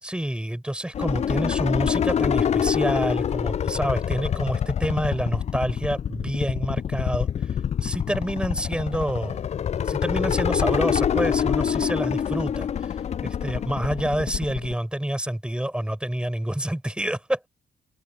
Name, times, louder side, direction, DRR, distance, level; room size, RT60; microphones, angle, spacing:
voice 1, 0.0-7.3 7.8-9.4 9.8-12.7 13.2-17.5, right 1 dB, 5° right, 4.5 m, -27 dB
sound 1, 0.9-14.7, left 8 dB, 35° left, 0.4 m, -26 dB
cardioid pair, 90°, 20 cm